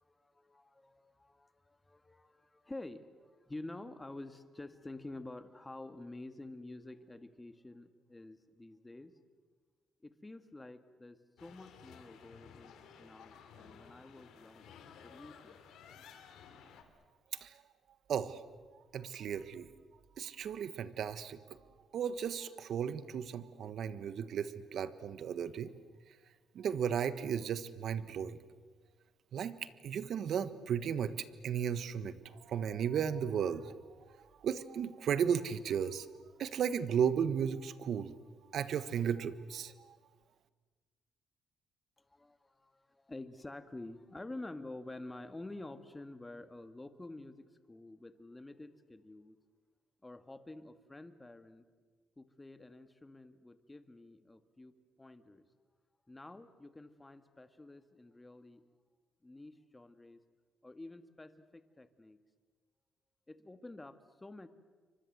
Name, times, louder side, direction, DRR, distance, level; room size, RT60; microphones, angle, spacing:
voice 1, 0.0-9.1 10.0-15.6 42.1-49.4 50.0-51.7 52.2-55.4 56.1-58.6 59.2-60.2 60.6-62.2 63.3-64.5, left 2 dB, 15° left, 10 dB, 1.9 m, -49 dB
sound 1, 11.4-16.8, left 7 dB, 80° left, 3.3 m, -55 dB
voice 2, 18.1-18.4 18.9-19.7 20.2-21.4 21.9-25.7 26.5-28.4 29.3-29.5 29.8-31.1 31.4-32.2 32.5-33.7 34.4-36.0 36.4-38.1 38.5-40.0, right 8 dB, 65° right, 13 dB, 1.4 m, -34 dB
29.0 x 24.5 x 8.0 m, 1.4 s
cardioid pair, 90°, 0 cm